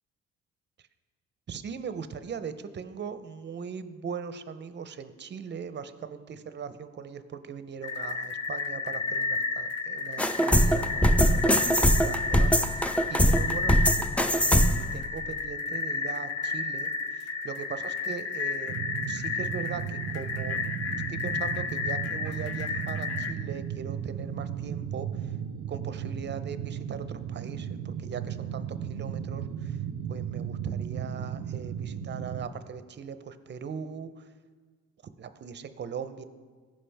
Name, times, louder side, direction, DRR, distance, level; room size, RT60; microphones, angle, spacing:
voice 1, 1.5-18.8 19.1-20.6 21.1-25.3 25.7-29.8 30.1-34.2 35.0-36.2, right 6 dB, 35° right, 11 dB, 0.6 m, -40 dB
sound 1, 7.8-23.3, left 4 dB, 55° left, 0.7 m, -32 dB
sound 2, 10.2-14.9, equal, 5° left, 0.4 m, -22 dB
sound 3, 18.7-32.5, right 8 dB, 85° right, 0.5 m, -35 dB
15.5 x 5.2 x 3.4 m, 1.5 s
cardioid pair, 90°, 30 cm